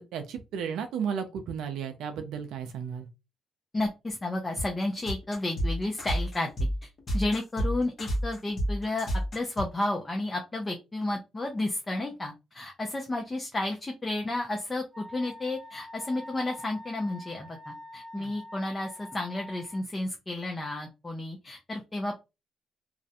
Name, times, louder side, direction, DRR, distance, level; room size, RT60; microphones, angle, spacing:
voice 1, 0.1-3.1 18.1-18.3, right 7 dB, 85° right, 0.4 m, -34 dB
voice 2, 3.7-6.5 6.8-22.2, left 2 dB, 20° left, 0.5 m, -32 dB
sound 1, 4.6-9.8, equal, 40° left, 0.9 m, -30 dB
Wind instrument woodwind instrument, 14.9-19.8, left 1 dB, 20° right, 0.7 m, -45 dB
2.4 x 2.1 x 2.7 m
cardioid pair, 90°, 0 cm